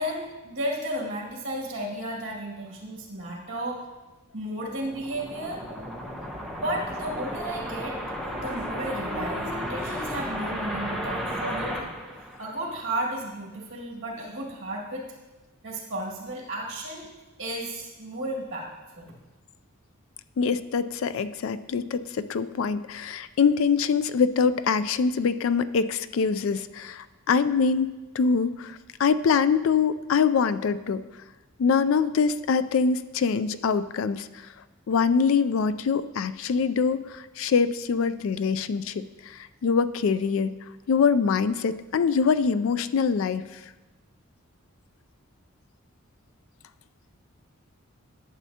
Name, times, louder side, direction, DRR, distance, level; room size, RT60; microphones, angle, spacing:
voice 1, 0.0-3.8 4.3-5.6 6.6-8.0 8.3-11.9 12.4-15.1 15.6-17.1 17.4-18.7 19.0-19.1, right 1 dB, 60° right, -3 dB, 2.1 m, -33 dB
sound 1, 4.6-12.9, equal, ahead, 0.8 m, -34 dB
voice 2, 20.4-27.9 28.1-31.0 31.6-34.3 34.9-40.5 40.9-43.4, left 5 dB, 70° left, 14 dB, 0.3 m, -24 dB
11.5 x 7.3 x 2.8 m, 1.1 s
head